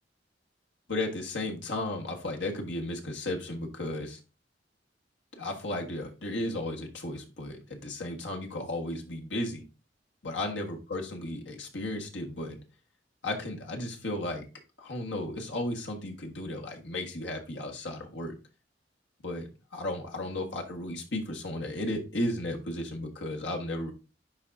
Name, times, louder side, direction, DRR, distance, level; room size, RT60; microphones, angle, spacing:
voice 1, 0.9-4.2 5.4-9.6 10.2-12.6 13.2-14.4 14.8-18.3 19.2-23.9, left 1 dB, 85° left, 1 dB, 1.6 m, -34 dB
10.5 x 3.7 x 2.7 m, 0.31 s
head